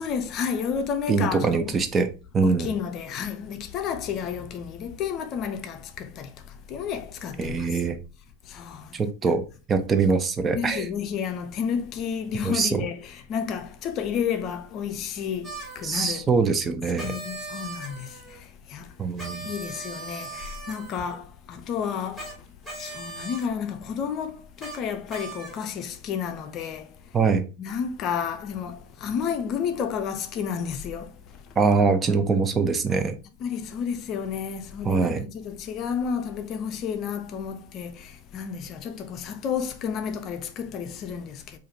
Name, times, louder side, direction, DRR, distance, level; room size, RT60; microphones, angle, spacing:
voice 1, 0.0-1.8 2.4-7.7 8.4-9.0 9.3-9.4 10.5-16.3 17.0-19.0 19.4-27.2 27.6-31.6 33.4-41.6, left 7 dB, 40° left, 0.5 m, -31 dB
voice 2, 1.1-2.7 7.4-8.0 8.9-9.4 9.7-10.8 12.4-12.8 15.8-17.1 19.0-19.5 27.1-27.4 31.6-33.2 34.8-35.2, right 4 dB, 20° right, 0.4 m, -23 dB
sound 1, 15.4-15.9 17.0-18.4 19.2-21.2 22.1-22.3 22.6-23.5 24.6-24.8 25.1-25.7, right 3 dB, ahead, 1.8 m, -39 dB
4.7 x 2.5 x 2.7 m
hypercardioid pair, 115°, 0 cm